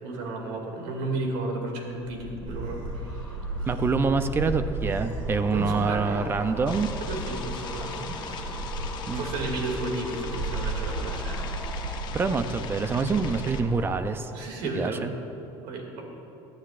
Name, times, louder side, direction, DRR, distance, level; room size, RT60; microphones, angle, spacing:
voice 1, 0.0-3.3 5.5-6.2 7.0-8.2 9.1-11.5 14.3-15.1 15.6-16.0, right 2 dB, 85° right, 1 dB, 2.4 m, -33 dB
sound 1, 2.2-14.5 14.8-15.2, left 1 dB, 10° left, 1.6 m, -42 dB
Gull seagull, 2.5-13.7, right 2 dB, 60° right, 2.1 m, -34 dB
voice 2, 3.7-6.9 9.1-9.2 12.1-14.3 14.7-15.1, right 4 dB, 20° right, 9 dB, 0.5 m, -26 dB
sound 2, 6.7-13.6, left 8 dB, 45° left, 0.8 m, -41 dB
18.0 x 12.0 x 2.5 m, 2.9 s
cardioid pair, 140°, 10 cm